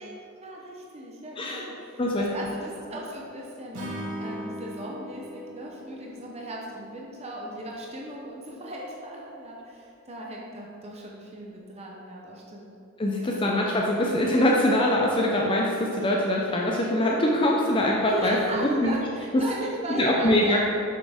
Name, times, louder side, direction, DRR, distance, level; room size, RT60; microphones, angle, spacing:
voice 1, 0.0-12.7 13.1-13.5 18.1-20.6, right 1 dB, 30° right, -2 dB, 0.7 m, -37 dB
Acoustic guitar / Strum, 3.7-7.0, equal, 90° right, 1.7 m, -38 dB
voice 2, 13.0-19.0 20.0-20.6, left 1 dB, 25° left, -2 dB, 0.5 m, -23 dB
6.9 x 6.4 x 3.5 m, 2.8 s
head